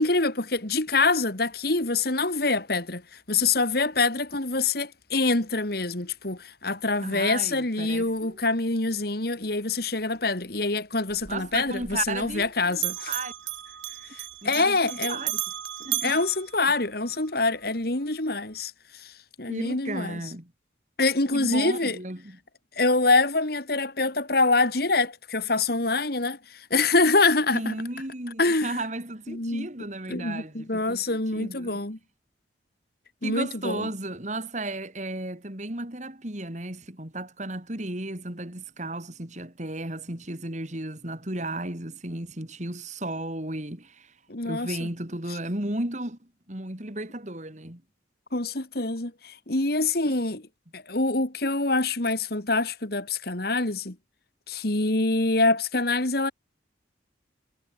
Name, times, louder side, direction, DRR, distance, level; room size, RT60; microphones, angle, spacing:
voice 1, 0.0-3.0 3.3-13.1 14.4-15.2 16.0-19.1 19.4-20.2 21.0-22.0 22.8-27.7 28.4-28.7 29.3-29.7 30.1-32.0 33.2-33.9 44.3-44.8 48.3-50.5 50.7-54.0 54.5-56.3, left 3 dB, 50° left, 2.3 m, -25 dB
voice 2, 7.0-8.4 11.3-13.3 14.4-15.4 15.8-16.2 19.5-20.5 21.3-22.4 27.5-31.8 33.2-44.1 44.4-46.2 46.5-47.8 50.1-50.2, right 2 dB, 40° right, 3.0 m, -34 dB
Bell, 11.1-12.5 12.7-17.2, right 14 dB, 80° right, 1.4 m, -34 dB
head